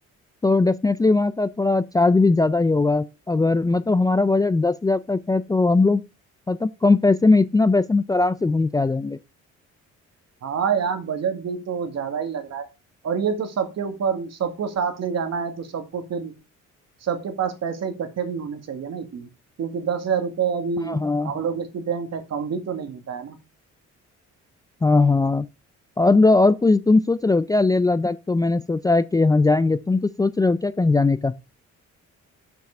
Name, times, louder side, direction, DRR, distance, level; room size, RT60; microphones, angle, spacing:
voice 1, 0.4-6.0 6.5-9.2 20.9-21.3 24.8-25.5 26.0-31.3, left 3 dB, 10° left, 0.3 m, -19 dB
voice 2, 10.4-12.6 13.0-16.3 17.0-19.3 19.6-23.4, right 6 dB, 60° right, 1.8 m, -27 dB
7.2 x 6.0 x 4.2 m
cardioid pair, 90°, 30 cm